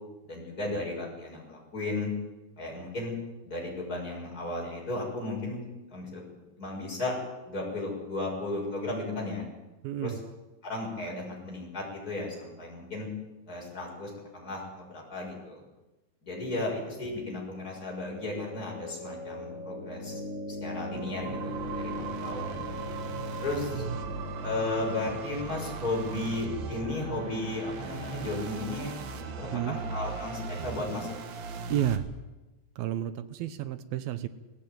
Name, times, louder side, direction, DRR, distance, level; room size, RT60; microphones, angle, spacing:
voice 1, 0.2-2.1 2.6-3.2 3.5-6.2 6.6-7.1 7.5-9.5 10.0-10.1 10.6-13.1 13.5-15.6 16.2-20.2 20.6-22.5 23.4-23.8 24.4-28.9 29.4-31.2, left 2 dB, 20° left, -2 dB, 7.1 m, -35 dB
voice 2, 9.8-10.2 22.1-22.2 23.7-24.0 29.5-29.8 31.7-32.1 32.8-34.3, right 11 dB, 75° right, 12 dB, 2.5 m, -31 dB
sound 1, 17.8-29.8, left 1 dB, 80° left, 0.6 m, -41 dB
sound 2, 20.9-32.0, right 5 dB, 55° right, 2.2 m, -38 dB
18.5 x 15.5 x 9.4 m, 1.1 s
omnidirectional pair, 4.5 m